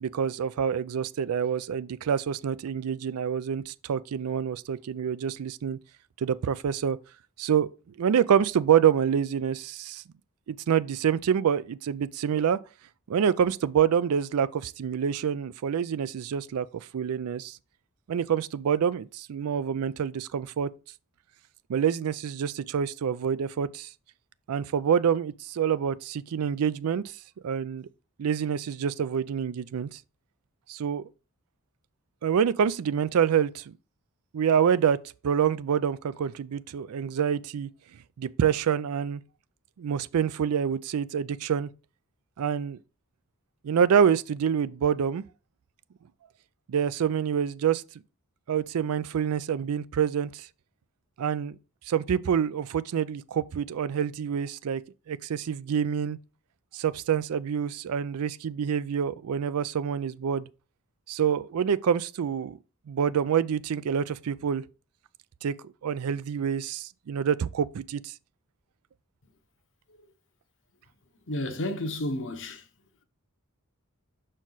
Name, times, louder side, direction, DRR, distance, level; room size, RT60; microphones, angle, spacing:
voice 1, 0.0-5.8 6.2-7.0 7.4-7.7 8.0-10.0 10.5-12.6 13.1-17.6 18.1-20.7 21.7-23.9 24.5-27.0 27.4-27.9 28.2-30.0 30.7-31.1 32.2-33.7 34.3-35.0 35.2-37.7 38.2-39.2 39.8-41.7 42.4-42.8 43.6-45.2 46.7-47.8 48.5-50.5 51.2-51.6 51.9-54.8 55.1-56.2 56.7-60.5 61.1-62.6 62.9-64.6 65.4-68.1, right 8 dB, 80° right, 0.4 m, -26 dB
voice 2, 71.3-72.6, left 1 dB, 55° left, 0.9 m, -31 dB
6.0 x 4.4 x 3.9 m
head